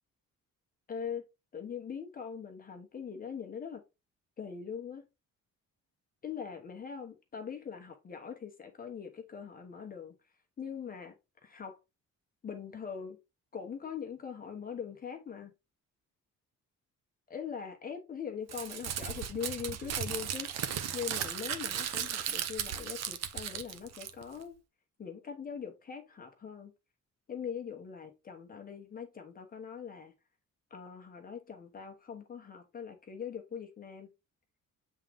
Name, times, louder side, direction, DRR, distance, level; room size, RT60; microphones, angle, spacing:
voice 1, 0.9-1.2 1.5-3.8 4.4-5.0 6.2-10.1 10.6-11.1 11.4-11.8 12.4-13.2 13.5-15.5 17.3-20.5 20.9-24.6 25.0-26.7 27.3-30.1 30.7-34.1, left 7 dB, 30° left, 1.1 m, -41 dB
Crumpling crinkling, 18.5-24.4, right 9 dB, 60° right, 0.8 m, -36 dB
7.3 x 3.7 x 3.4 m
cardioid pair, 165°, 30 cm